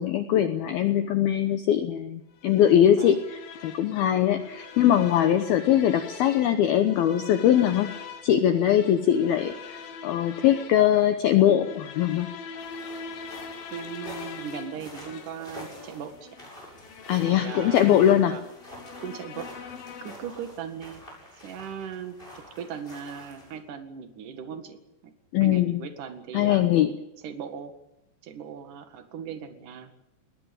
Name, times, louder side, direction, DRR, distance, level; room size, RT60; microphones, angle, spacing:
voice 1, 0.0-7.9 8.2-12.3 17.1-18.4 25.3-25.8 26.3-26.9, left 10 dB, 80° left, 9 dB, 2.2 m, -22 dB
sound 1, 2.4-20.4, left 5 dB, 60° left, 3.1 m, -43 dB
sound 2, 12.6-23.6, left 1 dB, 10° left, 7.7 m, -47 dB
voice 2, 13.7-16.4 17.2-18.4 19.0-19.7 20.0-21.0 21.3-25.1 25.4-26.7 27.2-27.7 28.2-29.9, right 7 dB, 50° right, 7 dB, 2.8 m, -39 dB
19.5 x 19.5 x 8.9 m, 0.89 s
omnidirectional pair, 5.7 m